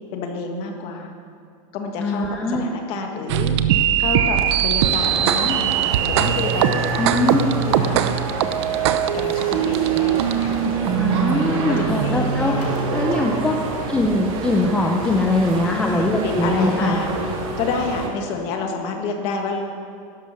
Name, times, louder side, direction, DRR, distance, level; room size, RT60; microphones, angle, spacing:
voice 1, 0.1-1.1 1.7-3.6 4.0-5.8 6.0-7.1 7.7-8.2 9.1-10.9 11.5-13.6 15.6-17.1 17.6-19.6, left 4 dB, 30° left, 3 dB, 1.7 m, -29 dB
voice 2, 2.0-2.6 7.0-7.5 11.0-12.6 12.9-13.6 13.9-17.0, left 2 dB, 5° left, 0 dB, 0.6 m, -21 dB
sound 1, 3.3-14.1, right 10 dB, 50° right, 0.8 m, -22 dB
sound 2, 4.8-18.1, right 3 dB, 30° right, 2.0 m, -29 dB
15.5 x 12.0 x 6.5 m, 2.3 s
supercardioid pair, 175°, 18 cm